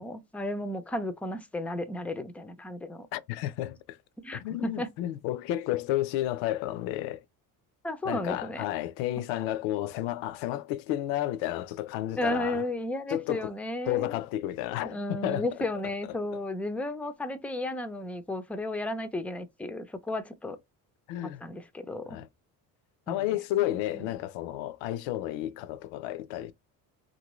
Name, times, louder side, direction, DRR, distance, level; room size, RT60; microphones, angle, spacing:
voice 1, 0.0-3.1 4.2-4.9 7.8-8.6 12.1-14.2 14.8-20.6 21.2-22.2 23.1-23.2 23.9-24.1, left 1 dB, 5° left, 0.3 m, -34 dB
voice 2, 3.1-4.0 4.3-7.2 8.0-12.6 13.1-13.5 13.9-15.5 21.1-21.4 22.1-22.3 23.1-26.5, left 14 dB, 75° left, 0.6 m, -31 dB
2.8 x 2.6 x 3.0 m
supercardioid pair, 80°, 46 cm